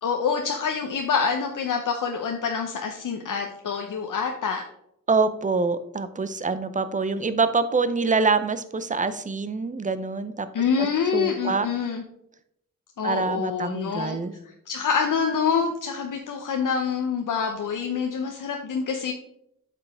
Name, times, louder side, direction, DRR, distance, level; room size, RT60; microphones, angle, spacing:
voice 1, 0.0-4.7 10.5-12.0 13.0-14.2 14.4-19.1, left 6 dB, 65° left, 3 dB, 0.8 m, -26 dB
voice 2, 5.1-10.5 10.8-10.9 11.1-11.7 13.0-14.3, right 4 dB, 25° right, 12 dB, 0.6 m, -25 dB
8.3 x 5.7 x 3.5 m, 0.78 s
cardioid pair, 85°, 34 cm